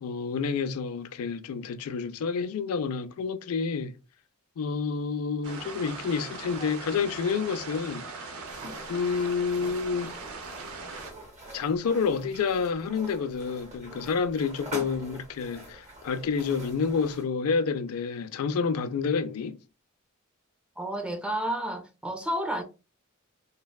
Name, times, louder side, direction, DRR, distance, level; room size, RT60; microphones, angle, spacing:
voice 1, 0.0-3.9 4.6-8.0 8.9-10.1 11.5-19.6, left 5 dB, 90° left, 0.4 m, -29 dB
sound 1, 5.4-11.1, right 4 dB, 85° right, 0.6 m, -40 dB
sound 2, 8.4-17.3, equal, 35° right, 0.8 m, -45 dB
voice 2, 20.8-22.6, right 1 dB, 5° right, 0.4 m, -31 dB
3.3 x 2.1 x 2.2 m
head